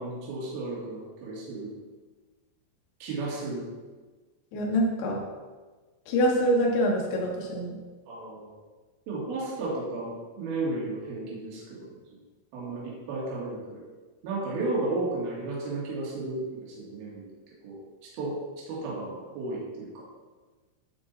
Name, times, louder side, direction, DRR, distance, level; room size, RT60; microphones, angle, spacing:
voice 1, 0.0-1.7 3.0-3.7 8.1-8.5 9.1-12.2 12.5-13.8 14.2-17.3 17.6-20.1, right 2 dB, 55° right, -4 dB, 3.5 m, -34 dB
voice 2, 4.5-5.2 6.1-7.8, equal, 65° left, -2 dB, 3.2 m, -25 dB
12.5 x 5.2 x 4.0 m, 1.3 s
omnidirectional pair, 5.9 m